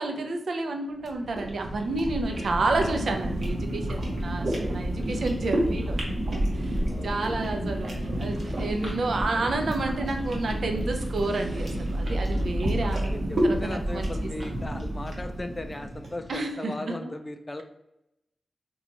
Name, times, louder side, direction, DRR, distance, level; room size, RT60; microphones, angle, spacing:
voice 1, 0.0-7.9 8.2-14.3 16.3-17.1, right 3 dB, 80° right, 4 dB, 0.4 m, -30 dB
sound 1, 1.0-16.2, right 1 dB, 60° right, 0.9 m, -30 dB
sound 2, 1.6-16.3, right 1 dB, 10° right, 1.3 m, -45 dB
voice 2, 6.9-7.5 8.6-8.9 12.4-12.5 13.1-17.6, left 2 dB, 25° left, 8 dB, 0.3 m, -38 dB
2.9 x 2.3 x 3.9 m, 0.88 s
wide cardioid pair, 95°, 0 cm